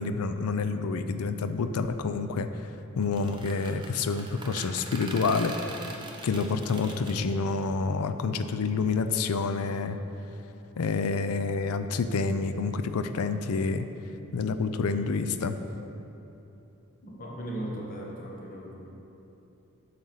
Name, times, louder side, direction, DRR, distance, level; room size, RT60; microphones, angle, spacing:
voice 1, 0.0-2.5 3.0-5.5 6.2-10.0 10.8-13.9 14.3-15.6, left 4 dB, 85° left, 10 dB, 0.4 m, -28 dB
sound 1, 3.0-7.2, right 2 dB, 20° right, 0.7 m, -42 dB
voice 2, 17.0-19.0, right 1 dB, 40° left, -3 dB, 1.1 m, -38 dB
9.0 x 6.7 x 3.9 m, 3.0 s
head